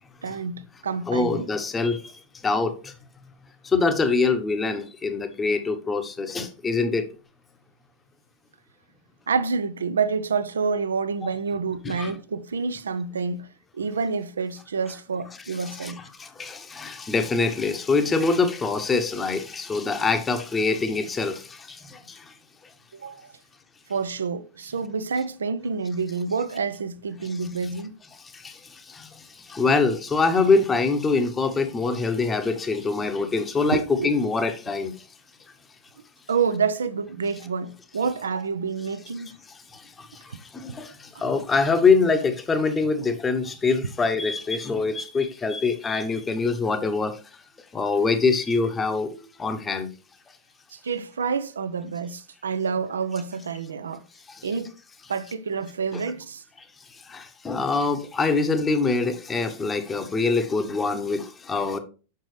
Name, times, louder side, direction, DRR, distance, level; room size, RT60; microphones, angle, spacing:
voice 1, 0.2-1.5 9.3-13.5 13.7-16.0 22.9-23.3 23.9-28.0 33.7-34.1 36.3-39.3 40.3-40.4 50.7-54.0 54.4-54.7 55.1-56.4, right 5 dB, 70° right, 0.5 m, -28 dB
voice 2, 1.1-2.2 2.4-2.9 3.6-7.1 11.8-12.1 15.6-15.9 16.2-22.2 28.3-28.6 28.9-29.1 29.5-34.9 39.7-39.8 40.1-40.2 40.5-47.2 47.7-49.9 54.3-54.4 55.9-56.0 57.1-61.8, left 4 dB, 15° left, 1.0 m, -24 dB
6.7 x 6.0 x 3.3 m
figure-of-eight pair, 90°, 0 cm